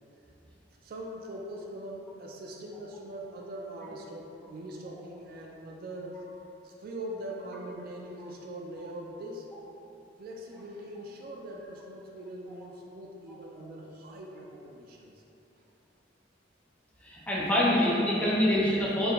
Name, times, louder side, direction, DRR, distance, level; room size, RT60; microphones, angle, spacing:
voice 1, 0.8-6.2 6.6-9.5 10.2-15.1, right 1 dB, 55° right, 0 dB, 0.3 m, -42 dB
voice 2, 17.0-19.1, left 1 dB, 10° left, -7 dB, 0.7 m, -25 dB
4.6 x 2.1 x 3.7 m, 2.9 s
head